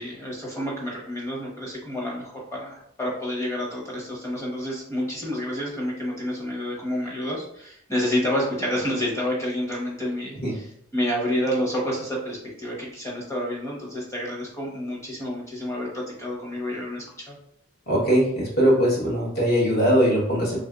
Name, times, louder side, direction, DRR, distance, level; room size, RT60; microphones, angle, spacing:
voice 1, 0.0-17.4, left 1 dB, 15° left, -3 dB, 0.9 m, -29 dB
voice 2, 17.9-20.6, equal, 50° left, -4 dB, 1.1 m, -21 dB
3.2 x 2.5 x 2.3 m, 0.72 s
head